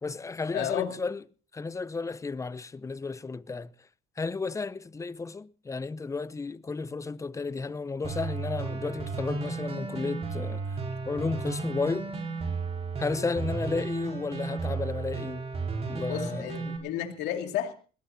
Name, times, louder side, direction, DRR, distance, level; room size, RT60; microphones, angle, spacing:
voice 1, 0.0-1.2 1.5-3.7 4.2-10.8 11.1-12.1 13.0-15.4 15.9-16.7, left 4 dB, 20° left, 0.7 m, -33 dB
voice 2, 0.5-0.9 13.2-13.3 16.1-17.7, left 10 dB, 85° left, 2.5 m, -32 dB
sound 1, 8.0-16.8, right 4 dB, 35° right, 5.2 m, -34 dB
21.0 x 19.0 x 2.8 m
cardioid pair, 110°, 17 cm